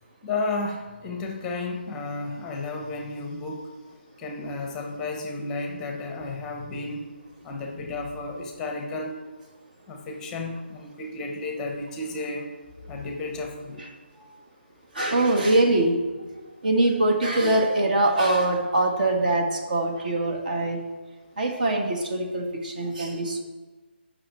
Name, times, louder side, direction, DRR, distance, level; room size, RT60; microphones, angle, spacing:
voice 1, 0.2-3.6 4.2-7.1 7.4-9.2 9.9-12.5 12.9-13.8, left 3 dB, 10° left, 2 dB, 0.9 m, -32 dB
voice 2, 14.9-20.8 21.4-23.4, right 2 dB, 45° right, 2 dB, 1.6 m, -23 dB
7.5 x 5.9 x 7.4 m, 1.4 s
figure-of-eight pair, 165°, 6 cm